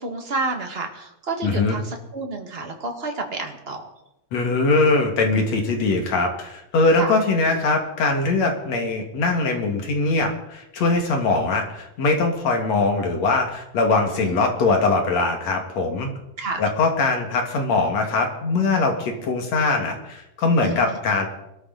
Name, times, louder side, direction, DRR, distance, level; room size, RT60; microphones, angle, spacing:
voice 1, 0.0-3.9 7.0-7.2 14.0-14.5 16.4-16.6 20.6-21.0, right 3 dB, 25° right, 3 dB, 1.6 m, -30 dB
voice 2, 1.4-1.8 4.3-16.2 16.6-21.3, left 3 dB, 60° left, 3 dB, 3.1 m, -21 dB
22.5 x 13.0 x 4.0 m, 0.85 s
omnidirectional pair, 3.5 m